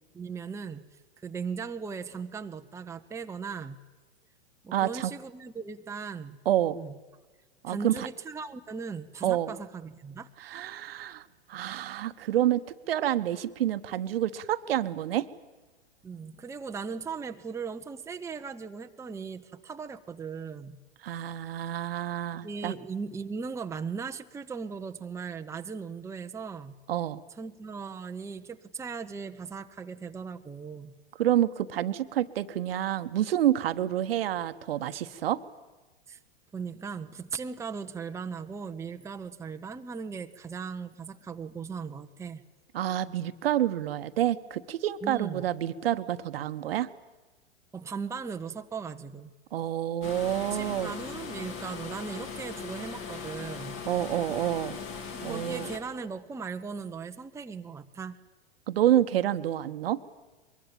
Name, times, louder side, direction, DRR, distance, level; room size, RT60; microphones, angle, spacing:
voice 1, 0.1-0.8 1.2-3.8 4.6-6.4 6.7-7.0 7.7-10.3 16.0-20.8 22.3-26.8 27.4-30.9 36.1-36.2 36.5-42.4 45.0-45.4 47.7-49.3 50.4-53.8 55.1-58.2, right 5 dB, 10° right, 6 dB, 0.8 m, -38 dB
voice 2, 4.7-5.1 6.4-6.8 7.6-8.1 9.2-9.5 10.4-11.2 11.5-15.3 21.0-22.7 26.9-27.2 31.2-35.4 42.7-46.9 49.5-50.9 53.8-54.8 55.2-55.7 58.7-60.0, right 12 dB, 65° right, 12 dB, 1.1 m, -28 dB
sound 1, 50.0-55.8, left 5 dB, 40° left, 3.3 m, -39 dB
23.0 x 22.5 x 8.9 m, 1.3 s
figure-of-eight pair, 100°, 32 cm